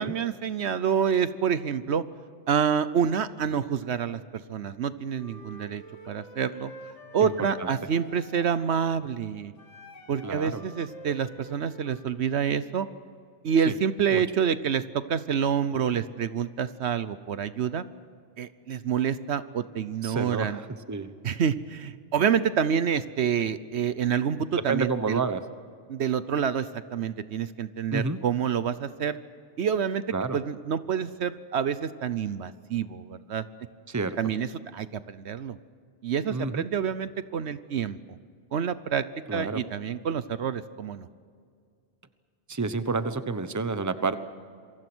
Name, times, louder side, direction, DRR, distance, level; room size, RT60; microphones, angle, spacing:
voice 1, 0.0-2.0 2.5-4.2 4.5-6.7 7.1-9.5 10.1-12.9 13.4-17.8 18.4-20.6 21.2-25.2 25.9-29.2 29.6-30.0 30.3-33.4 34.2-35.6 36.0-38.0 38.5-39.0 39.3-41.1, right 7 dB, 70° right, 14 dB, 1.1 m, -27 dB
Wind instrument woodwind instrument, 5.1-8.7 9.6-12.1, equal, 80° left, 2.4 m, -47 dB
voice 2, 10.2-10.6 13.7-13.8 14.1-14.2 20.0-21.1 24.7-25.4 27.9-28.2 30.1-30.4 33.9-34.2 36.3-36.7 39.3-39.6 42.5-44.2, right 4 dB, 15° right, 11 dB, 1.0 m, -29 dB
27.5 x 24.0 x 6.2 m, 2.2 s
omnidirectional pair, 1.2 m